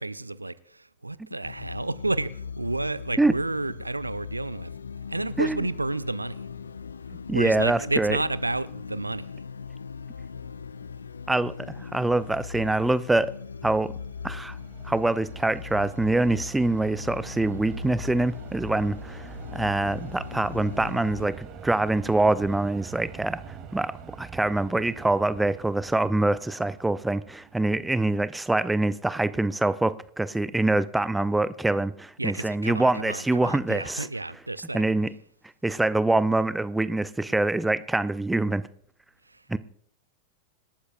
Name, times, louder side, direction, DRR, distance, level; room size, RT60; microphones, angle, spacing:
voice 1, 0.0-4.7 5.1-6.4 7.3-9.3 32.2-34.8 39.3-39.6, right 2 dB, 85° right, 0.5 m, -31 dB
sound 1, 1.4-21.3, left 6 dB, 75° left, 0.5 m, -39 dB
voice 2, 7.3-8.2 11.3-13.3 13.6-13.9 14.2-14.6 14.8-23.9 24.2-34.1 34.7-35.1 35.6-38.7 39.5-39.6, right 2 dB, 5° right, 0.5 m, -25 dB
sound 2, 13.9-28.2, right 7 dB, 30° right, 2.6 m, -44 dB
26.0 x 12.5 x 2.5 m
figure-of-eight pair, 90°, 0 cm